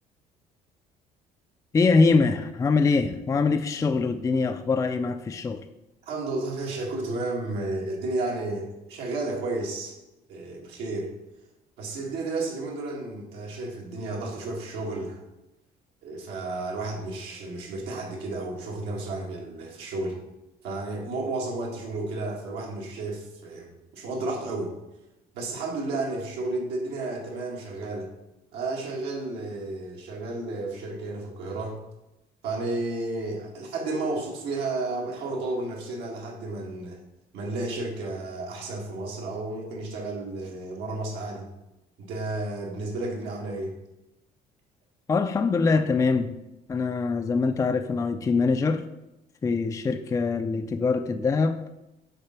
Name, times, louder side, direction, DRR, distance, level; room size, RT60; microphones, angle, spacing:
voice 1, 1.7-5.6 45.1-46.3 46.7-48.8 49.4-51.6, left 4 dB, 20° left, 8 dB, 0.3 m, -23 dB
voice 2, 6.0-10.0 10.3-11.1 11.8-15.2 16.0-20.2 20.6-24.7 25.3-28.1 28.5-31.8 32.4-37.0 37.3-41.5 42.0-43.7, right 2 dB, 85° right, -1 dB, 1.9 m, -32 dB
6.8 x 3.7 x 5.8 m, 0.94 s
cardioid pair, 110°, 17 cm